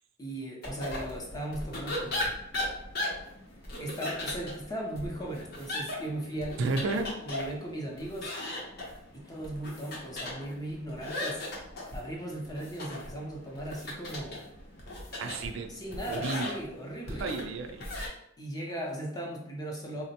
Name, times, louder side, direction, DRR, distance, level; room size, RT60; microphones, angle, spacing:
voice 1, 0.2-2.4 3.8-6.6 7.2-8.3 9.1-11.4 11.9-14.5 15.7-17.2 18.4-20.0, right 1 dB, 20° left, -1 dB, 0.6 m, -37 dB
sound 1, 0.6-18.1, left 1 dB, 50° left, 0.7 m, -38 dB
voice 2, 6.6-7.2 15.2-15.7 16.1-16.5 17.2-17.8, right 3 dB, 70° right, 6 dB, 0.4 m, -32 dB
3.6 x 2.0 x 2.8 m, 0.75 s
head